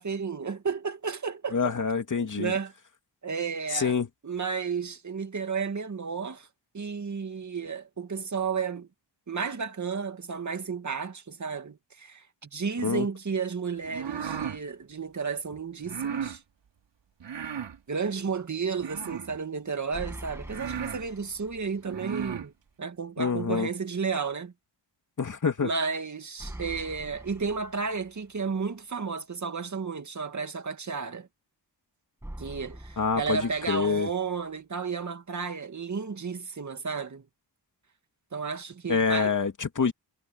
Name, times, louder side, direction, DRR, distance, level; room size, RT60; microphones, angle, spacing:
voice 1, 0.0-1.7 2.2-2.7 3.2-4.0 4.2-6.5 6.7-8.9 9.3-16.4 17.9-22.5 22.8-24.5 25.6-31.3 32.4-37.2 38.3-39.3, right 5 dB, 40° right, 2.3 m, -32 dB
voice 2, 1.5-2.5 3.7-4.1 12.8-13.1 23.2-23.7 25.2-25.7 33.0-34.1 38.9-39.9, left 5 dB, 45° left, 2.7 m, -26 dB
sound 1, 13.8-14.6 15.8-16.4 17.2-17.8 18.8-19.4 20.1-20.2 20.5-21.0 21.8-22.5, right 8 dB, 90° right, 3.6 m, -35 dB
sound 2, 19.9-21.9 22.3-22.4 26.4-28.4 32.2-34.2, right 1 dB, 5° right, 2.1 m, -44 dB
wide cardioid pair, 120°, 42 cm